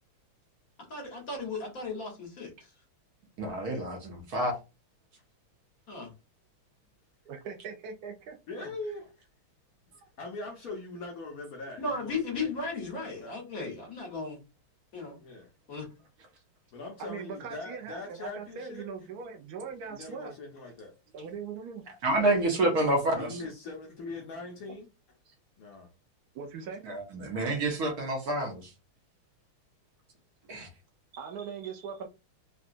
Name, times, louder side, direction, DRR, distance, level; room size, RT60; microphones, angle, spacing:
voice 1, 0.9-2.5 5.9-6.1 8.6-8.7 11.8-14.4 14.9-15.2 15.7-15.9, left 3 dB, 45° left, 1.4 m, -35 dB
voice 2, 3.4-4.5 22.0-23.4 26.8-28.7 30.5-30.7, right 2 dB, 60° right, 1.1 m, -28 dB
voice 3, 7.2-8.6 17.0-20.3 21.1-21.8 24.7-24.8 26.3-26.8 31.2-32.1, right 6 dB, 80° right, 0.8 m, -40 dB
voice 4, 8.5-9.3 10.2-13.4 15.2-15.5 16.7-18.9 19.9-20.9 23.1-24.9 25.6-25.9 27.6-27.8, left 2 dB, 70° left, 0.8 m, -42 dB
3.8 x 2.2 x 2.5 m
omnidirectional pair, 2.4 m